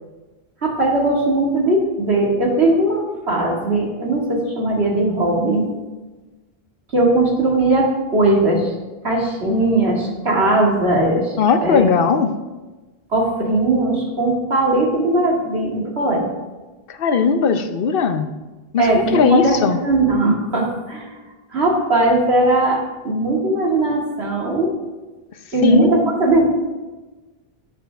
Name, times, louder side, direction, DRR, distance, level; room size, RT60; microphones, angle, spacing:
voice 1, 0.6-5.7 6.9-8.7 9.0-11.9 13.1-16.2 18.8-19.6 19.8-21.2 21.5-24.8 25.5-26.4, right 2 dB, 85° right, -2 dB, 2.3 m, -19 dB
voice 2, 11.4-12.3 16.9-18.3 18.7-18.8 19.1-19.8 25.6-25.9, left 5 dB, 65° left, 9 dB, 0.9 m, -17 dB
11.5 x 9.1 x 3.5 m, 1.2 s
omnidirectional pair, 1.1 m